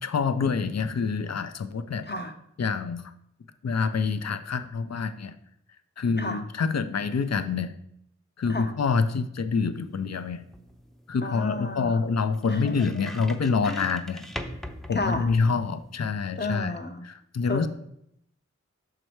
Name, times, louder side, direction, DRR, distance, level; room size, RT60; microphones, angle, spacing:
voice 1, 0.0-2.0 2.6-3.0 3.6-5.3 6.0-7.7 8.4-10.4 11.1-14.3 14.9-16.7 17.0-17.7, left 5 dB, 60° left, 11 dB, 0.5 m, -26 dB
sound 1, 9.7-16.0, equal, ahead, 0.6 m, -43 dB
voice 2, 11.2-11.9 12.5-13.0 13.6-13.9 14.9-15.3 16.4-17.1 17.5-17.7, left 2 dB, 35° left, 6 dB, 0.9 m, -32 dB
6.4 x 4.8 x 4.5 m, 0.73 s
wide cardioid pair, 45°, 30 cm